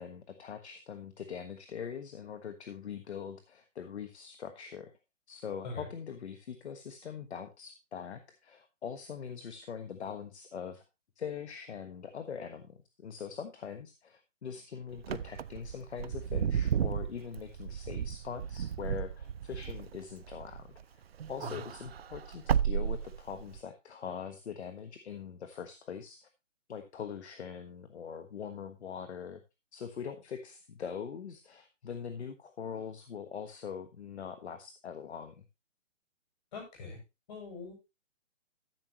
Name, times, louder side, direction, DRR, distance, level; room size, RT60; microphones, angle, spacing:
voice 1, 0.0-4.9 5.3-10.8 11.2-21.0 21.3-26.3 26.7-29.4 29.7-35.4, left 7 dB, 60° left, 8 dB, 1.4 m, -42 dB
Wind / Car, 15.0-20.8 21.1-23.6, right 8 dB, 50° right, 0.5 m, -33 dB
voice 2, 36.5-37.0 37.3-37.7, left 3 dB, 35° left, 2 dB, 6.9 m, -42 dB
13.5 x 7.5 x 3.0 m, 0.25 s
hypercardioid pair, 165°, 38 cm